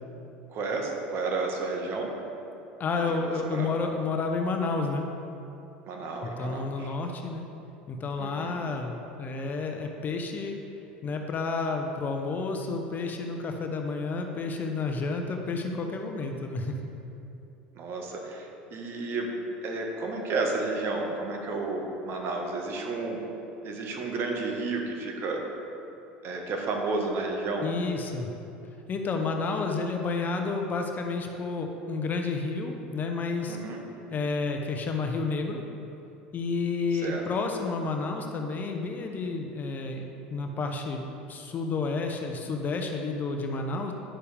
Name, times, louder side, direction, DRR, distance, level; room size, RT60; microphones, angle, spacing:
voice 1, 0.5-2.1 2.9-3.7 5.8-6.9 8.2-8.6 17.7-19.3 19.6-23.2 23.6-25.4 26.2-27.7 33.5-33.8 37.0-37.2, right 3 dB, 50° right, 1 dB, 1.5 m, -32 dB
voice 2, 2.8-5.0 6.2-7.4 7.9-10.6 11.0-16.8 27.6-28.3 28.9-33.6 34.1-35.6 36.3-43.9, left 4 dB, 35° left, 3 dB, 0.8 m, -30 dB
10.0 x 6.8 x 3.5 m, 2.8 s
hypercardioid pair, 85°, 5 cm